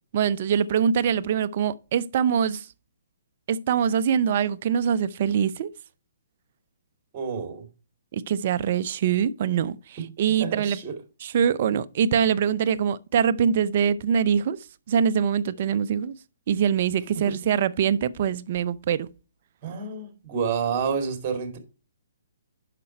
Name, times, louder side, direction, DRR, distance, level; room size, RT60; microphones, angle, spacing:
voice 1, 0.1-2.7 3.5-5.7 8.1-10.8 11.2-14.6 14.9-16.2 16.5-19.1, right 8 dB, 50° right, 0.6 m, -23 dB
voice 2, 7.1-7.7 10.0-10.1 10.4-11.0 17.1-17.3 19.6-21.6, right 6 dB, 35° right, 2.4 m, -29 dB
8.4 x 6.0 x 4.5 m
hypercardioid pair, 140°, 0 cm